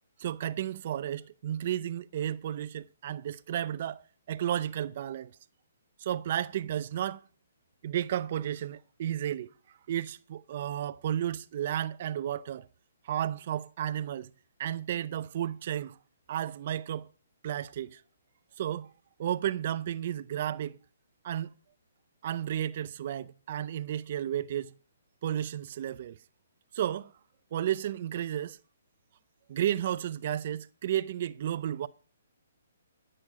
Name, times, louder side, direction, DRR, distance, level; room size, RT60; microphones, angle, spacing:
voice 1, 0.2-5.3 6.0-7.2 7.8-9.5 9.9-12.7 13.0-14.3 14.6-16.0 16.3-17.1 17.4-18.0 18.6-18.9 19.2-20.8 21.2-21.5 22.2-24.7 25.2-26.2 26.7-27.1 27.5-28.6 29.5-31.9, right 11 dB, 50° right, 0.5 m, -32 dB
14.0 x 7.8 x 4.8 m
hypercardioid pair, 145°, 0 cm